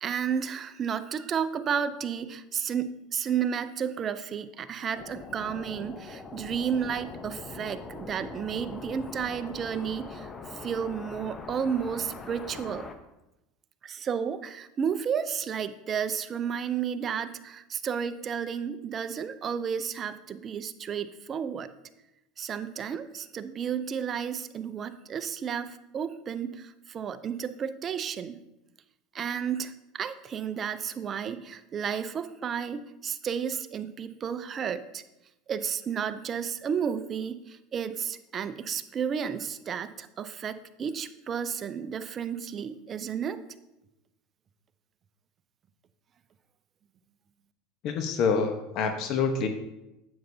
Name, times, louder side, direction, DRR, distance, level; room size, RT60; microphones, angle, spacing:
voice 1, 0.0-12.9 13.8-21.7 22.4-28.4 29.1-35.0 35.5-43.4, right 7 dB, 35° right, 12 dB, 0.5 m, -32 dB
sound 1, 4.9-13.0, left 4 dB, 25° left, 0.8 m, -42 dB
voice 2, 47.8-49.5, left 5 dB, 55° left, 6 dB, 0.9 m, -26 dB
9.5 x 7.8 x 2.7 m, 0.93 s
supercardioid pair, 110°, 0 cm